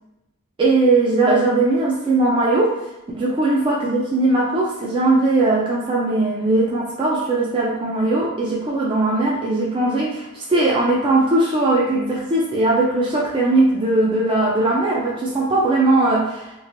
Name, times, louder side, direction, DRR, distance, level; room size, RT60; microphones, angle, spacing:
voice 1, 0.6-2.8 3.1-16.5, right 2 dB, 25° right, -5 dB, 0.4 m, -19 dB
3.1 x 2.5 x 2.5 m, 0.96 s
head